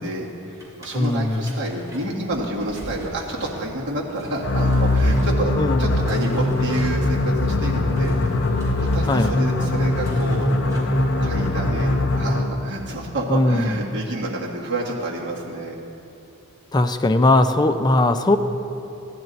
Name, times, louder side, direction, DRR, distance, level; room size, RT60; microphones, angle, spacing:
voice 1, 0.0-8.1 8.8-15.8, right 1 dB, 55° right, -4 dB, 1.7 m, -29 dB
sound 1, 0.6-11.0, equal, 15° right, 2.8 m, -42 dB
voice 2, 0.9-1.6 5.6-5.9 9.1-9.4 13.3-13.8 16.7-18.4, left 2 dB, 20° left, 8 dB, 0.4 m, -19 dB
sound 2, 4.4-12.7, left 1 dB, 55° left, 0.8 m, -21 dB
15.0 x 10.5 x 4.0 m, 2.9 s
head